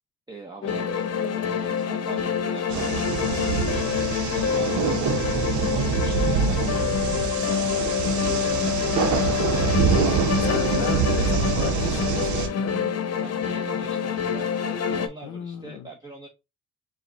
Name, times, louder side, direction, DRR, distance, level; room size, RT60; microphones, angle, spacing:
voice 1, 0.3-3.8 4.2-6.7 7.1-7.9 8.2-9.3 13.2-16.3, right 3 dB, 15° right, 0.8 m, -41 dB
sound 1, 0.6-15.1, left 7 dB, 55° left, 0.9 m, -26 dB
sound 2, 2.7-12.5, right 6 dB, 70° right, 0.8 m, -25 dB
voice 2, 10.4-12.8 15.2-15.9, left 10 dB, 90° left, 0.7 m, -35 dB
4.9 x 2.3 x 3.9 m
cardioid pair, 90°, 30 cm